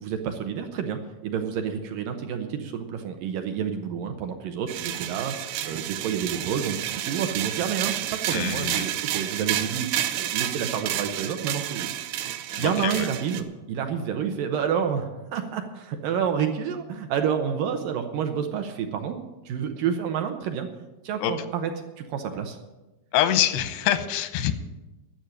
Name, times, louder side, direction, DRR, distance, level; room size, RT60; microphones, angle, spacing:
voice 1, 0.0-9.9 10.2-11.9 12.6-19.2 19.5-20.7 21.0-21.7 22.0-22.6, right 7 dB, 70° right, 6 dB, 2.2 m, -29 dB
sound 1, 4.7-13.4, right 12 dB, 90° right, 2.8 m, -30 dB
voice 2, 8.3-8.9 12.5-13.1 21.2-21.3 23.1-24.5, left 11 dB, 90° left, 11 dB, 3.0 m, -25 dB
12.0 x 7.4 x 9.9 m, 1.1 s
omnidirectional pair, 4.6 m